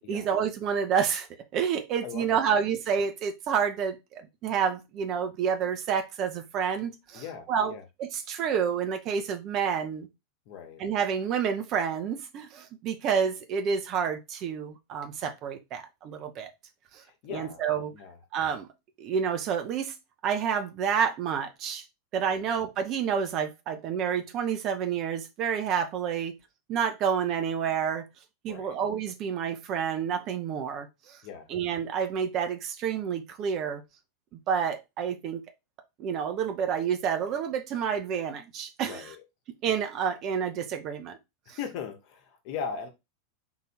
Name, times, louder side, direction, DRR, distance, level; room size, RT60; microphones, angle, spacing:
voice 1, 0.1-1.3 1.5-7.7 8.0-10.1 10.8-16.5 16.9-17.0 17.3-17.9 18.3-18.7 19.0-19.9 20.2-21.8 22.1-26.3 26.7-28.1 28.4-31.2 31.5-33.8 34.3-35.4 36.0-39.1 39.6-41.2 41.5-41.6, right 7 dB, 40° right, 0.8 m, -29 dB
voice 2, 2.0-2.5 7.1-7.8 10.5-10.8 17.0-17.6 17.9-18.2 22.3-22.6 28.5-28.7 31.2-31.5 38.8-39.2 41.5-42.9, left 7 dB, 50° left, 1.1 m, -39 dB
3.9 x 2.7 x 4.3 m
figure-of-eight pair, 90°, 0 cm